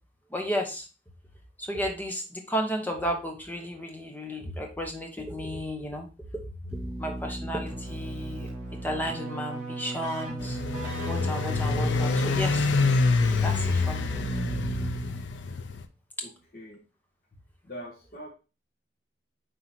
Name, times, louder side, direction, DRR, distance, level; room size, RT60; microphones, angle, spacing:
voice 1, 0.3-0.9 1.6-6.1 6.7-8.5 8.8-10.6 11.1-13.0 13.4-14.1, equal, 10° left, 2 dB, 1.1 m, -33 dB
Keyboard (musical), 6.7-15.4, right 2 dB, 10° right, 3.1 m, -35 dB
sound 1, 10.4-15.9, left 4 dB, 85° left, 0.6 m, -26 dB
voice 2, 16.2-16.8 17.3-18.3, equal, 50° left, -1 dB, 1.3 m, -44 dB
9.5 x 3.8 x 2.9 m, 0.31 s
head